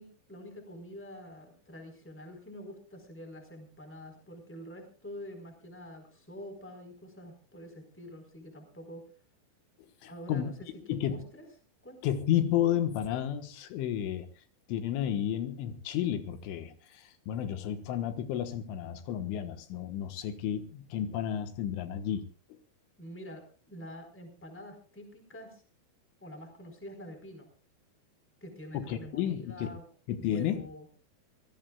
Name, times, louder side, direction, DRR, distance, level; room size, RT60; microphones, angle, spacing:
voice 1, 0.0-9.0 10.0-11.4 11.8-12.1 23.0-25.6 26.2-27.5 28.4-29.9 30.1-30.9, equal, 5° left, 5 dB, 3.8 m, -46 dB
voice 2, 10.0-10.5 10.9-11.2 12.0-14.3 14.7-22.3 28.7-29.7 30.1-30.6, left 10 dB, 80° left, 8 dB, 3.7 m, -32 dB
26.5 x 17.0 x 2.4 m, 0.36 s
omnidirectional pair, 5.5 m